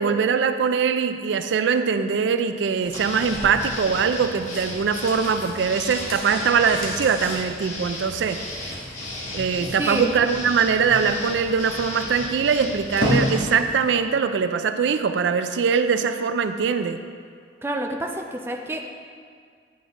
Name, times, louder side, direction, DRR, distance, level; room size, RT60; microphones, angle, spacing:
voice 1, 0.0-8.4 9.3-17.0, right 6 dB, 80° right, 9 dB, 0.3 m, -22 dB
sound 1, 2.7-13.9 14.2-14.3, left 1 dB, 55° left, 1.5 m, -33 dB
sound 2, 2.9-13.4, left 1 dB, 40° left, 1.2 m, -35 dB
voice 2, 9.7-10.1 17.6-18.9, right 1 dB, 15° right, 2 dB, 0.4 m, -28 dB
9.3 x 6.2 x 3.0 m, 2.1 s
head